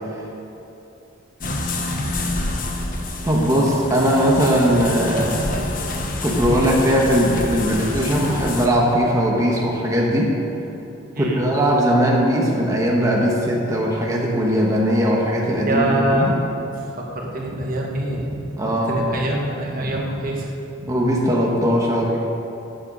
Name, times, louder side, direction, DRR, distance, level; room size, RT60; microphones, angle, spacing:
sound 1, 1.4-8.7, left 2 dB, 40° left, 1.0 m, -27 dB
voice 1, 3.2-5.5 6.2-10.3 11.2-16.3 18.6-19.0 20.9-22.2, equal, 15° right, -3 dB, 1.3 m, -19 dB
voice 2, 15.6-16.4 16.7-20.5 20.8-20.9, right 1 dB, 40° right, -1 dB, 1.3 m, -24 dB
13.0 x 9.1 x 5.4 m, 2.9 s
head